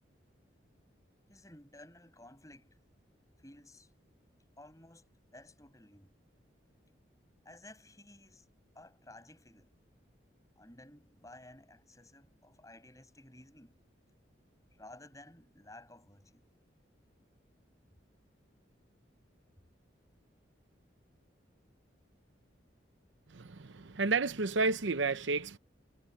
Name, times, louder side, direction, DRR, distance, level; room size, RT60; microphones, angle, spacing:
voice 1, 1.3-2.8 3.4-3.9 4.6-5.0 5.3-6.1 7.4-8.4 8.7-9.7 10.6-13.7 14.8-16.4, left 1 dB, 15° left, 6.3 m, -55 dB
voice 2, 23.3-25.6, right 3 dB, 80° right, 0.8 m, -31 dB
head